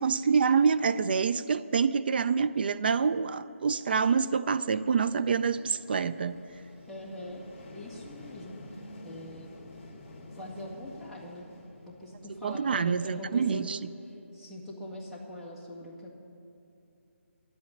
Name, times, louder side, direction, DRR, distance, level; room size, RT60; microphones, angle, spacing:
voice 1, 0.0-6.4 12.4-13.8, right 6 dB, 45° right, 13 dB, 0.4 m, -26 dB
sound 1, 4.7-13.4, left 1 dB, 25° left, 2.3 m, -49 dB
voice 2, 6.9-7.4 7.7-8.6 9.0-9.5 10.3-11.5 11.9-13.6 14.0-16.2, left 1 dB, ahead, -8 dB, 1.7 m, -42 dB
11.0 x 8.5 x 9.3 m, 2.7 s
figure-of-eight pair, 155°, 7 cm